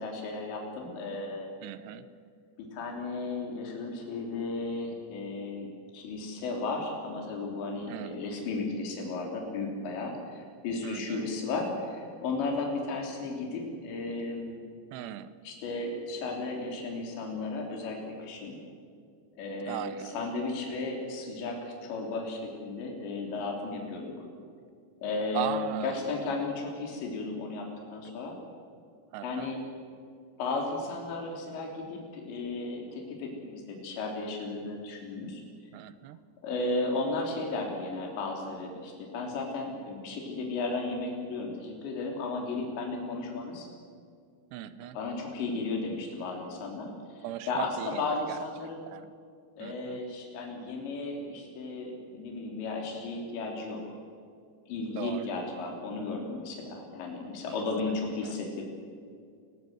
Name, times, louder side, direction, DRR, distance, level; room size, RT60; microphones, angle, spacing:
voice 1, 0.0-1.5 2.6-14.6 15.5-18.6 19.4-24.2 25.0-28.4 29.2-29.6 30.4-35.4 36.4-43.7 45.0-48.8 49.6-53.9 54.7-58.6, left 3 dB, 75° left, 1 dB, 5.4 m, -34 dB
voice 2, 1.6-2.1 7.9-8.2 10.8-11.3 14.9-15.4 19.7-20.2 25.3-26.2 29.1-29.5 35.7-36.2 44.5-45.0 47.2-48.4 48.9-49.1 49.6-50.0 54.9-55.4 57.9-58.4, right 12 dB, 75° right, 14 dB, 2.8 m, -38 dB
28.5 x 17.0 x 7.9 m, 2.3 s
omnidirectional pair, 5.2 m